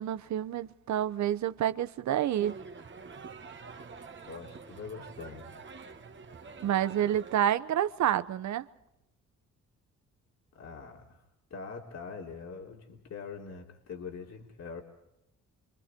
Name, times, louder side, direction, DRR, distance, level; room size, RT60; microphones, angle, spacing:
voice 1, 0.0-2.5 6.6-8.7, right 11 dB, 70° right, 1.1 m, -28 dB
sound 1, 2.4-7.4, right 5 dB, 40° right, 2.0 m, -47 dB
voice 2, 4.3-5.5 10.5-11.2 11.5-14.8, left 5 dB, 60° left, 3.5 m, -43 dB
29.5 x 26.0 x 4.6 m
cardioid pair, 90°, 30 cm